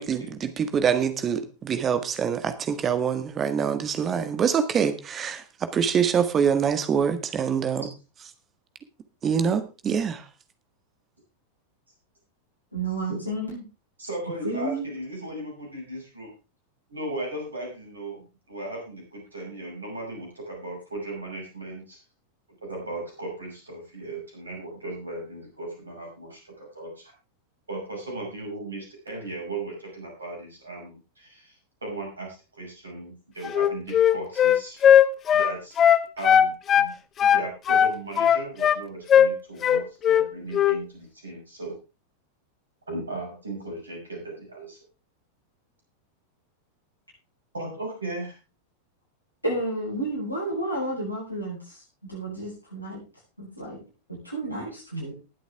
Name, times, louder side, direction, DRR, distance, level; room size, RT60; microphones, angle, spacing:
voice 1, 0.0-5.4 5.7-7.8 9.2-10.2, right 7 dB, 25° right, 10 dB, 1.6 m, -25 dB
voice 2, 12.7-13.6 14.4-14.8 49.4-51.7 52.1-53.0 53.4-53.8 54.2-55.1, right 1 dB, 85° left, -5 dB, 7.8 m, -31 dB
voice 3, 14.0-16.3 16.9-22.0 22.6-27.1 27.7-31.5 31.8-34.8 35.3-35.7 36.2-36.9 37.2-41.8 42.9-44.8 47.5-48.4, right 2 dB, 75° right, 0 dB, 6.3 m, -37 dB
Wind instrument woodwind instrument, 33.4-36.9 37.2-38.8 39.1-39.3 39.6-40.3 40.5-40.8, left 9 dB, 25° left, 0.8 m, -18 dB
19.5 x 8.2 x 3.6 m, 0.31 s
figure-of-eight pair, 90°, 0 cm